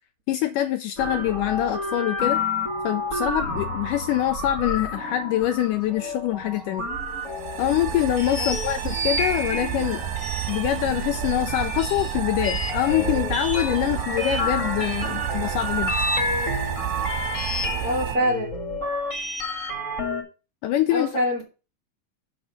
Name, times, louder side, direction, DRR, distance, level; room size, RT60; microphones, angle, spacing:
voice 1, 0.3-2.4 2.8-6.9 7.6-10.1 10.5-15.9 20.6-21.1, left 13 dB, 80° left, 1.9 m, -24 dB
sound 1, 1.0-20.2, left 2 dB, 35° left, 1.4 m, -30 dB
sound 2, 7.0-18.2, right 11 dB, 90° right, 2.6 m, -30 dB
voice 2, 17.7-18.5 20.9-21.4, equal, 35° right, 1.6 m, -25 dB
6.3 x 6.2 x 5.6 m
omnidirectional pair, 4.2 m